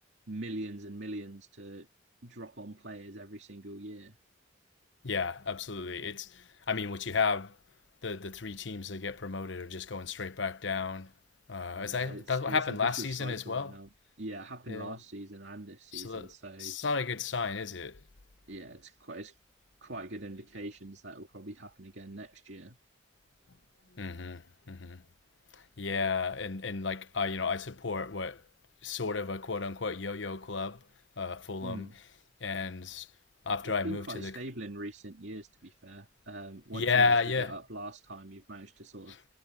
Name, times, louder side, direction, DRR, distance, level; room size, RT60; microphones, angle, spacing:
voice 1, 0.3-1.9 2.2-4.2 11.7-13.9 14.2-16.8 18.5-19.4 19.8-22.8 31.6-32.0 33.6-39.2, right 1 dB, 70° right, 2.4 m, -43 dB
voice 2, 5.0-7.5 8.0-11.1 11.5-13.7 14.7-14.9 15.9-16.3 16.6-18.0 24.0-24.4 24.7-25.0 25.8-28.4 28.8-30.8 31.2-31.9 32.4-33.1 33.5-34.3 36.7-37.5, left 4 dB, 75° left, 1.0 m, -32 dB
head